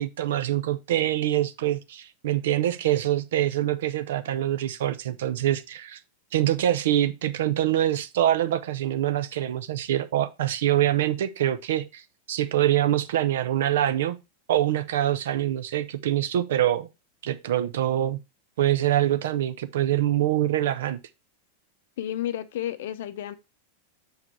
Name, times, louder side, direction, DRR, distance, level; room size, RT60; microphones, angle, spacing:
voice 1, 0.0-6.0 6.3-12.0 12.3-14.2 14.5-16.9 17.2-18.2 18.6-21.0, right 12 dB, 55° right, 0.7 m, -25 dB
voice 2, 22.0-23.3, left 11 dB, 55° left, 0.7 m, -31 dB
6.6 x 4.8 x 4.6 m
figure-of-eight pair, 90°, 0 cm